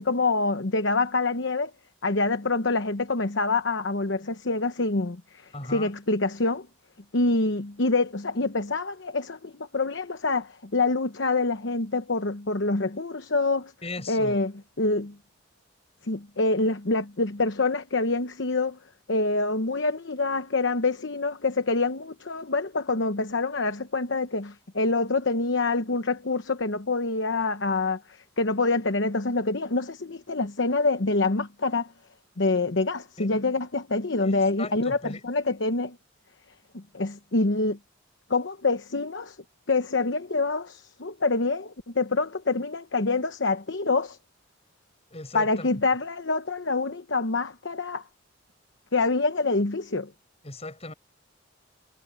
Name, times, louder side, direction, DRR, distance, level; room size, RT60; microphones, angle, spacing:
voice 1, 0.0-1.7 2.0-6.7 7.1-13.7 14.1-15.2 16.0-18.8 19.1-31.9 32.4-36.0 36.7-37.8 38.3-39.4 39.7-44.2 45.3-48.0 48.9-50.1, left 3 dB, 65° left, 1.0 m, -26 dB
voice 2, 5.5-5.9 13.8-14.4 33.2-33.3 34.2-35.2 45.1-45.7 50.4-50.9, left 2 dB, 30° left, 7.9 m, -37 dB
head